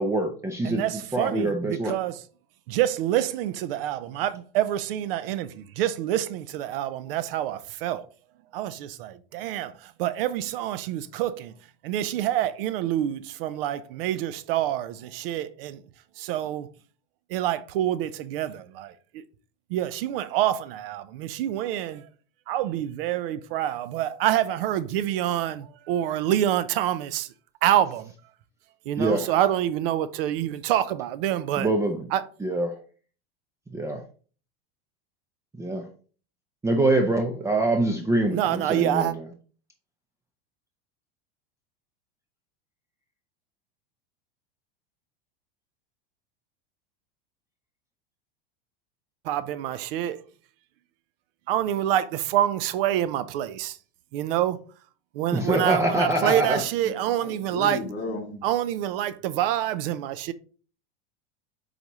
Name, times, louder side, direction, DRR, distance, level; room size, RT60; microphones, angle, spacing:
voice 1, 0.0-0.8 1.1-1.9 29.0-29.3 31.6-32.0 32.4-32.8 33.7-34.0 35.6-35.9 36.6-39.3 55.3-56.6, right 1 dB, 10° right, 0.6 m, -24 dB
voice 2, 0.6-2.2 2.7-8.0 8.5-11.5 11.8-15.8 16.2-16.7 17.3-19.2 19.7-22.0 22.5-27.3 27.6-28.1 28.9-31.7 32.1-32.2 38.3-39.1 49.2-50.2 51.5-53.8 54.1-54.6 55.1-57.8 58.4-60.3, right 12 dB, 65° right, 0.6 m, -27 dB
voice 3, 56.8-58.5, left 3 dB, 40° left, 2.4 m, -35 dB
8.1 x 4.1 x 3.0 m
supercardioid pair, 130°, 30 cm